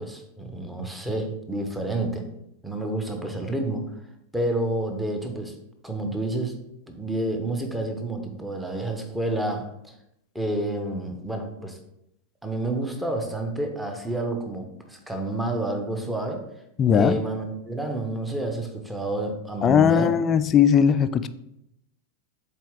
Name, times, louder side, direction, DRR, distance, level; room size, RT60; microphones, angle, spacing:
voice 1, 0.0-2.3 2.6-3.9 4.3-5.5 5.8-6.6 6.9-9.9 10.3-11.8 12.4-16.5 16.9-20.1, right 2 dB, 5° right, 4 dB, 0.9 m, -29 dB
voice 2, 16.8-17.2 19.6-21.3, left 7 dB, 25° left, 12 dB, 0.3 m, -18 dB
7.3 x 4.1 x 3.7 m, 0.81 s
figure-of-eight pair, 90°, 0 cm